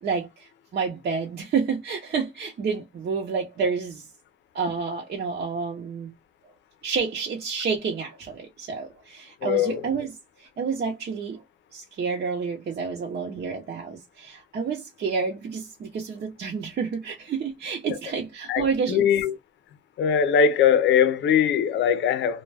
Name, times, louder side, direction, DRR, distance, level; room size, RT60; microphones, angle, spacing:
voice 1, 0.0-4.1 4.5-6.1 6.8-11.4 11.7-19.0, right 5 dB, 55° right, 0.7 m, -29 dB
voice 2, 9.4-9.8 18.5-19.4 20.0-22.4, left 8 dB, 65° left, 0.5 m, -21 dB
2.3 x 2.2 x 3.3 m
cardioid pair, 90°, 20 cm